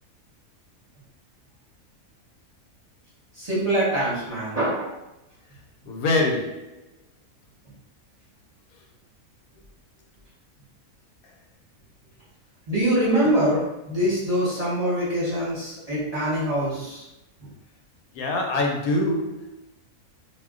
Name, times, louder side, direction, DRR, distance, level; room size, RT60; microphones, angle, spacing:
voice 1, 3.3-4.9 12.7-13.6 13.9-17.0 17.4-17.5, right 1 dB, 30° right, -9 dB, 0.8 m, -24 dB
voice 2, 5.9-6.7 13.2-13.4 18.1-19.6, left 2 dB, 75° left, 1 dB, 1.0 m, -25 dB
2.4 x 2.1 x 3.6 m, 0.88 s
omnidirectional pair, 1.5 m